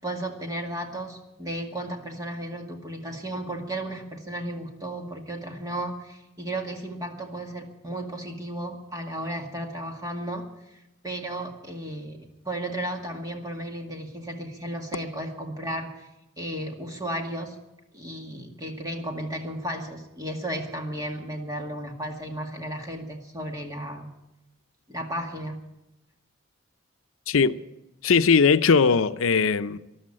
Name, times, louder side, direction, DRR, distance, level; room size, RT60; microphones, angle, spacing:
voice 1, 0.0-16.1 16.4-17.6 17.9-24.1 24.9-25.6, right 1 dB, 15° right, 2.1 m, -34 dB
voice 2, 27.3-27.6 28.0-29.8, left 5 dB, 80° left, 0.6 m, -19 dB
14.0 x 12.0 x 8.6 m
head